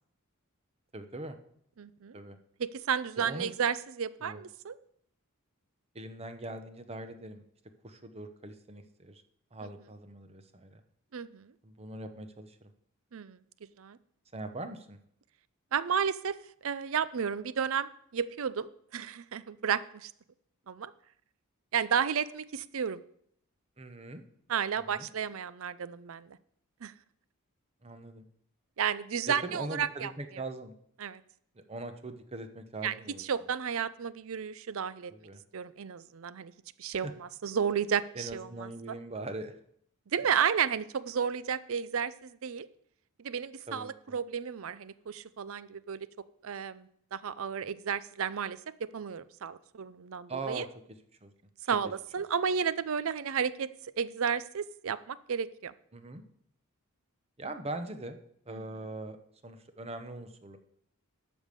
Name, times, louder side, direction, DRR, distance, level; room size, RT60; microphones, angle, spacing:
voice 1, 0.9-1.4 2.1-2.4 3.2-3.5 4.2-4.4 5.9-7.4 7.8-9.2 9.5-10.8 11.6-12.7 14.3-15.0 23.8-24.2 24.8-25.1 27.8-28.3 29.3-30.7 31.5-33.2 35.1-35.4 37.0-37.1 38.1-39.5 40.2-40.3 43.7-44.0 50.3-50.7 51.2-51.3 55.9-56.2 57.4-58.2 58.5-59.2 59.4-60.6, right 2 dB, 30° right, 8 dB, 0.9 m, -41 dB
voice 2, 1.8-2.2 2.6-4.8 11.1-11.5 13.1-13.4 13.8-14.0 15.7-16.4 16.6-20.1 20.7-20.9 21.7-23.0 24.5-26.4 26.8-26.9 28.8-30.1 31.0-31.2 32.8-35.1 35.5-36.5 36.8-38.7 40.1-42.7 43.2-46.1 46.4-50.7 51.7-53.7 54.0-55.7 58.5-58.6, right 7 dB, 65° right, 16 dB, 0.5 m, -32 dB
12.5 x 5.3 x 6.7 m, 0.69 s
head